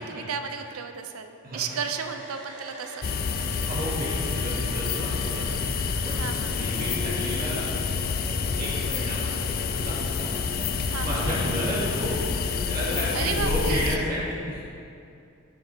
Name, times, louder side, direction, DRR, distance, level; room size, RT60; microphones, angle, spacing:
voice 1, 0.1-3.0 6.2-6.6 10.9-11.2 13.1-14.0, right 6 dB, 85° right, 7 dB, 0.6 m, -33 dB
voice 2, 1.4-1.8 3.7-5.5 6.0-7.7 8.5-9.4 9.7-10.4 11.0-12.2 12.7-14.6, equal, 40° right, -6 dB, 2.1 m, -31 dB
Domestic sounds home sounds, 1.5-13.3, right 2 dB, 65° right, 1.6 m, -43 dB
sound 1, 3.0-14.0, left 5 dB, 45° left, 0.4 m, -28 dB
11.0 x 6.8 x 3.5 m, 2.6 s
head